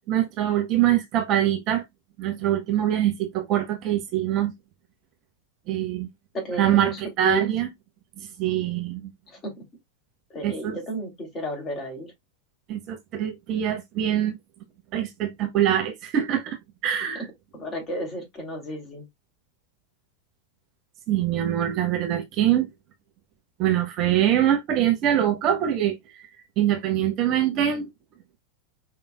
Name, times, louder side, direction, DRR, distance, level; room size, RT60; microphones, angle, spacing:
voice 1, 0.1-1.8 2.2-4.5 5.7-6.1 6.6-7.7 8.2-9.1 10.4-10.8 12.7-14.4 14.9-16.6 16.8-17.2 21.1-22.7 23.6-26.3 26.6-27.9, right 11 dB, 35° right, 1.1 m, -24 dB
voice 2, 6.3-7.5 9.4-9.5 10.3-12.1 17.1-17.2 17.5-19.0, right 1 dB, 25° left, 3.3 m, -32 dB
5.5 x 3.6 x 2.3 m
figure-of-eight pair, 90°, 0 cm